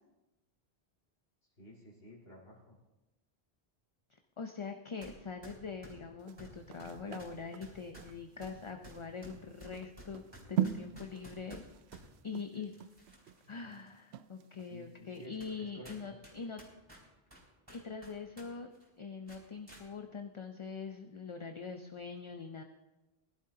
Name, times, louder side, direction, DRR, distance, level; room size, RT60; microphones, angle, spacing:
voice 1, 1.6-2.8 12.5-12.6 13.4-13.8 14.6-16.2, equal, 70° left, -5 dB, 2.4 m, -54 dB
voice 2, 4.4-10.2 10.5-11.6 12.2-12.7 13.5-16.6 17.7-18.7 19.0-22.6, left 5 dB, 35° left, 5 dB, 0.6 m, -43 dB
sound 1, 5.0-5.2 5.4-12.1 12.7-13.4 13.9-14.0 14.7-14.8 15.4-15.6 15.8-18.5 18.7-18.9 19.3-19.8, right 1 dB, 25° right, 3.5 m, -53 dB
sound 2, 6.2-14.7 15.1-15.3, right 11 dB, 80° right, 0.8 m, -40 dB
20.5 x 11.5 x 2.8 m, 1.1 s
omnidirectional pair, 1.1 m